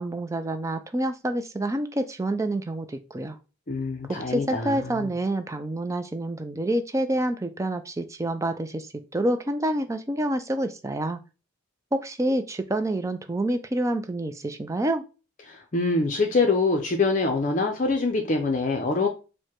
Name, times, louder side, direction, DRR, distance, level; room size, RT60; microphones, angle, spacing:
voice 1, 0.0-3.4 4.1-11.2 11.9-15.0, right 1 dB, 15° right, 0.4 m, -28 dB
voice 2, 3.7-5.1 15.5-19.1, left 3 dB, 35° left, 0.5 m, -25 dB
4.6 x 2.2 x 4.4 m
head